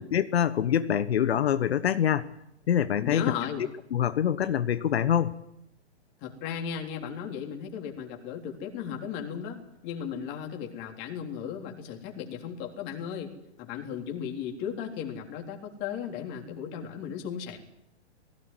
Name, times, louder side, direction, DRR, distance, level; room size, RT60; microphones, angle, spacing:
voice 1, 0.1-2.3 2.7-3.3 3.9-5.3, left 9 dB, 65° left, 13 dB, 1.2 m, -25 dB
voice 2, 3.0-3.7 6.2-13.3 13.6-17.6, left 8 dB, 35° left, 2 dB, 3.8 m, -36 dB
19.0 x 17.5 x 9.7 m, 0.83 s
hypercardioid pair, 130°, 33 cm